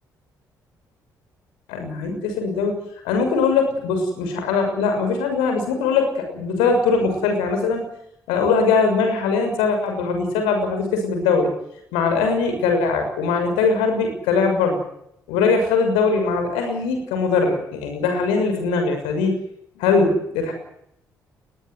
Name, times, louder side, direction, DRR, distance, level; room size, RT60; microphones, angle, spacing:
voice 1, 1.7-2.8 3.0-7.8 8.3-11.5 11.9-14.8 15.3-19.3 19.8-20.5, left 4 dB, 70° left, 6 dB, 6.5 m, -21 dB
21.0 x 20.5 x 9.5 m, 0.76 s
figure-of-eight pair, 40°, 10 cm